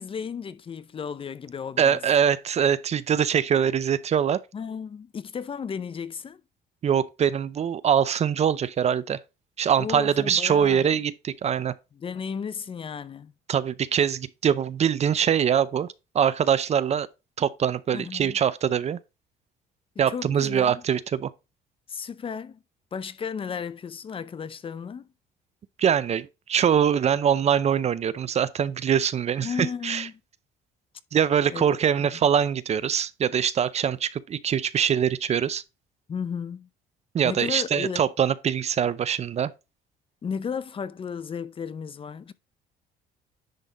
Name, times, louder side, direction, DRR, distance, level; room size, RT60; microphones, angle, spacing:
voice 1, 0.0-2.0 4.5-6.4 9.8-11.0 12.0-13.3 17.9-18.4 20.1-20.8 21.9-22.6 22.9-25.1 29.4-30.1 31.5-31.6 32.0-32.2 36.1-36.7 37.2-38.1 40.2-42.3, left 6 dB, 30° left, 0.6 m, -34 dB
voice 2, 1.8-4.4 6.8-9.2 9.6-11.7 13.5-15.9 16.1-17.1 17.4-19.0 20.0-21.3 25.8-30.1 31.1-35.6 37.1-39.5, right 8 dB, 40° right, 0.5 m, -23 dB
10.5 x 3.6 x 3.8 m
cardioid pair, 110°, 17 cm